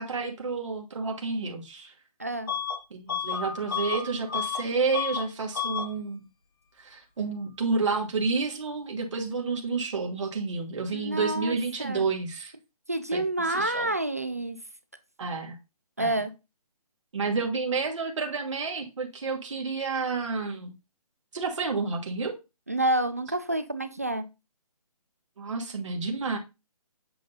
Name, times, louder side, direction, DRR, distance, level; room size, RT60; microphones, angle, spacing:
voice 1, 0.0-1.9 2.9-6.2 6.8-12.5 13.1-13.9 15.2-15.5 16.0-16.2 17.1-20.7 21.3-22.4 25.4-26.4, right 4 dB, 50° right, 1.3 m, -30 dB
voice 2, 2.2-2.5 10.9-12.1 12.9-14.6 16.0-16.3 22.7-24.2, right 1 dB, 25° right, 0.3 m, -28 dB
Bus / Alarm, 2.5-2.8 3.1-4.7 4.9-5.3 5.5-5.9, left 7 dB, 35° left, 1.1 m, -31 dB
7.6 x 2.5 x 5.4 m
hypercardioid pair, 175°, 19 cm